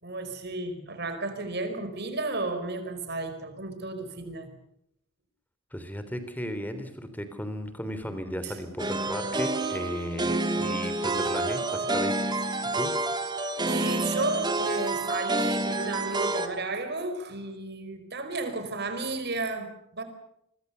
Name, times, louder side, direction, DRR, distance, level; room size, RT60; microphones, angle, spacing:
voice 1, 0.0-4.5 8.4-8.6 13.6-20.0, right 3 dB, 50° right, 8 dB, 4.8 m, -33 dB
voice 2, 5.7-12.3 12.7-12.9, equal, 10° left, 10 dB, 3.3 m, -35 dB
sound 1, 8.8-16.5, right 2 dB, 20° right, 2.2 m, -28 dB
25.5 x 24.0 x 6.9 m, 0.75 s
head